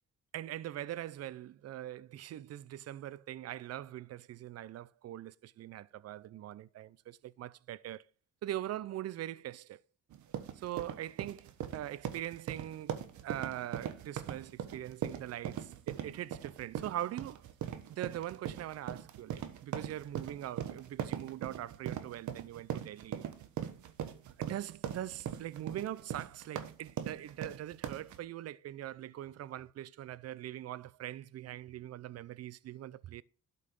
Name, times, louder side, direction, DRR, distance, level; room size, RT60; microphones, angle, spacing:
voice 1, 0.3-8.1 8.4-9.8 10.5-13.0 13.2-17.5 17.9-23.3 24.4-33.2, right 13 dB, 55° right, 0.6 m, -42 dB
sound 1, 10.1-28.2, right 9 dB, 70° right, 1.3 m, -40 dB
12.5 x 5.5 x 5.3 m
cardioid pair, 90°, 30 cm